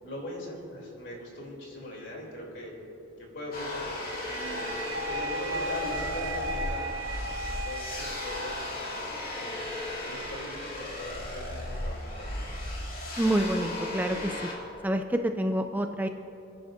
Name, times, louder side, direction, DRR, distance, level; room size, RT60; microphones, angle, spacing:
voice 1, 0.0-2.7 3.2-4.6 5.1-9.6 10.0-12.5, left 1 dB, 65° left, -2 dB, 3.1 m, -41 dB
sound 1, 3.5-14.5, left 1 dB, 45° left, 2.4 m, -36 dB
sound 2, 4.0-9.0, right 1 dB, 85° right, 0.8 m, -36 dB
voice 2, 13.2-14.3 14.8-16.1, right 1 dB, 10° right, 6 dB, 0.3 m, -27 dB
27.0 x 10.5 x 2.6 m, 2.8 s
head